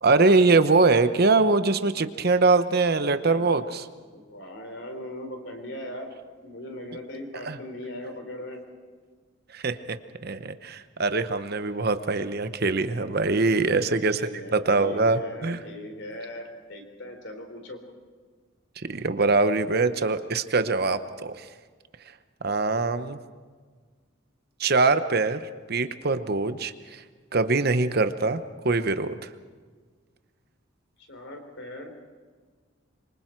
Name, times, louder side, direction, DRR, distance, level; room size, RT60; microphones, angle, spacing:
voice 1, 0.0-3.8 7.4-7.6 9.5-10.0 10.2-14.2 14.5-15.6 18.9-21.5 22.4-23.2 24.6-27.0 27.3-29.3, right 3 dB, 50° right, 11 dB, 0.9 m, -23 dB
voice 2, 4.1-6.2 6.4-8.6 13.4-17.8 31.0-32.0, left 1 dB, 60° left, 5 dB, 3.9 m, -39 dB
26.5 x 24.5 x 4.6 m, 1.5 s
head